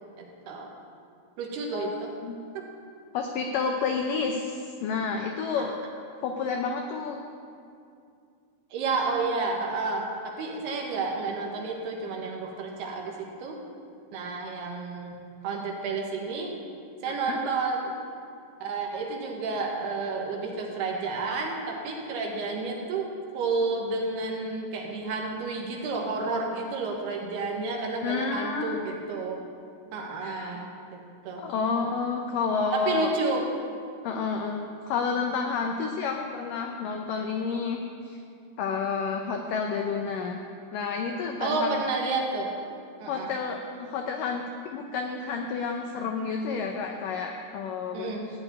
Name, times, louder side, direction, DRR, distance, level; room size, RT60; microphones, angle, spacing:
voice 1, 0.2-0.7 1.4-2.1 2.5-2.7 5.6-5.7 8.7-13.6 14.1-16.6 17.0-18.0 18.6-29.5 29.9-31.5 32.7-33.6 41.4-42.6 43.0-43.3 47.9-48.3, right 3 dB, 75° right, 0 dB, 3.3 m, -31 dB
voice 2, 1.7-2.4 3.1-5.7 6.2-7.2 17.1-17.4 28.0-28.8 30.2-30.6 31.4-33.1 34.0-38.2 38.6-40.4 40.7-41.8 43.1-44.4 44.7-48.1, left 5 dB, 85° left, 3 dB, 1.9 m, -30 dB
15.5 x 5.3 x 9.4 m, 2.4 s
omnidirectional pair, 4.8 m